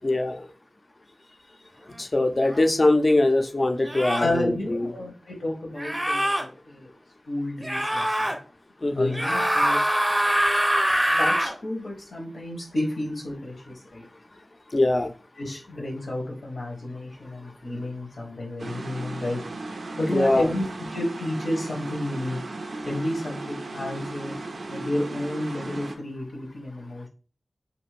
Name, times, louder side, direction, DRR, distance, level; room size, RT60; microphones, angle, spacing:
voice 1, 0.0-0.4 2.0-4.9 8.8-9.1 14.7-15.1 20.1-20.5, left 2 dB, 40° left, 6 dB, 0.4 m, -22 dB
sound 1, 2.5-2.6 3.9-4.3 5.8-6.4 7.6-8.4 9.1-11.5, equal, 15° right, 0.5 m, -23 dB
voice 2, 4.2-6.9 7.3-8.4 8.9-9.8 11.1-14.1 15.4-19.4 20.0-22.4 22.8-24.3 24.7-27.1, left 1 dB, 85° left, -2 dB, 0.8 m, -31 dB
sound 2, 18.6-26.0, right 2 dB, 85° right, 0.4 m, -36 dB
2.6 x 2.4 x 3.1 m, 0.38 s
wide cardioid pair, 70°, 0 cm